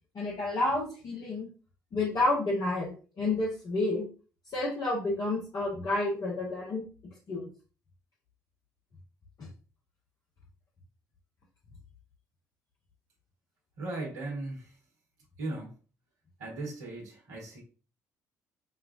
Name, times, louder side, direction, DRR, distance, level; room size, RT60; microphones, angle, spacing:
voice 1, 0.1-1.5 1.9-4.0 4.5-6.8 7.3-7.5 9.4-9.5, left 2 dB, 45° left, -4 dB, 1.0 m, -30 dB
voice 2, 13.8-14.8 15.4-15.8 16.4-17.6, right 2 dB, 80° right, -4 dB, 1.2 m, -37 dB
5.6 x 2.3 x 2.4 m, 0.37 s
hypercardioid pair, 50°, 9 cm